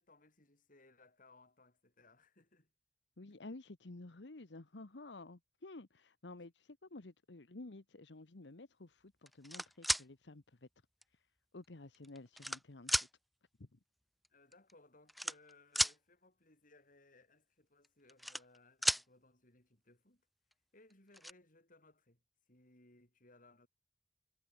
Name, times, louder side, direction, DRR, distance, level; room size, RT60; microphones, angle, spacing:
voice 1, 0.0-2.7 14.3-20.2 20.7-23.7, left 2 dB, 50° left, 7.1 m, -65 dB
voice 2, 3.2-10.7 11.1-11.3 11.5-13.1 13.6-13.8, left 2 dB, 80° left, 1.2 m, -52 dB
sound 1, 9.3-10.0 11.0-11.1 11.9-12.6 12.9-13.1 14.2-14.3 14.5-14.7 15.1-16.0 17.8-18.6 18.8-19.0 20.5-20.6 20.9-21.3, equal, ahead, 0.6 m, -34 dB
head